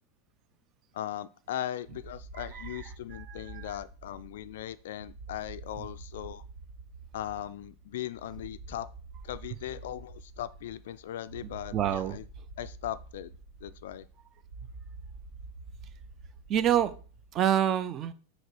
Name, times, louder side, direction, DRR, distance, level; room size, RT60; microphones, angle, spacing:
voice 1, 0.9-6.4 7.1-8.9 9.2-12.2 12.6-13.3 13.6-14.1, left 12 dB, 55° left, 15 dB, 0.3 m, -38 dB
sound 1, 1.8-17.4, right 3 dB, 60° right, 2.4 m, -47 dB
voice 2, 2.3-2.8 3.1-3.7 11.7-12.2 16.5-16.9 17.3-18.1, right 10 dB, 30° right, 14 dB, 0.5 m, -28 dB
6.5 x 4.3 x 4.6 m, 0.39 s
figure-of-eight pair, 90°, 0 cm